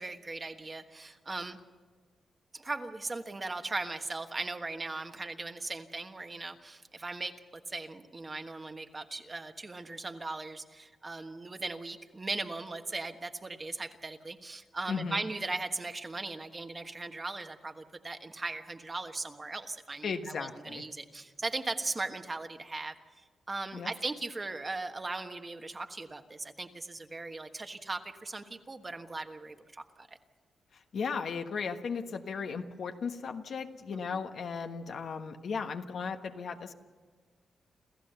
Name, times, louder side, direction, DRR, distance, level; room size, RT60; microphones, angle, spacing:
voice 1, 0.0-1.6 2.5-30.2, right 3 dB, 25° right, 7 dB, 1.3 m, -38 dB
voice 2, 14.9-15.2 20.0-20.8 23.7-23.9 30.7-36.7, left 5 dB, 65° left, 6 dB, 1.3 m, -36 dB
28.0 x 14.5 x 6.8 m, 1.5 s
cardioid pair, 95°, 0 cm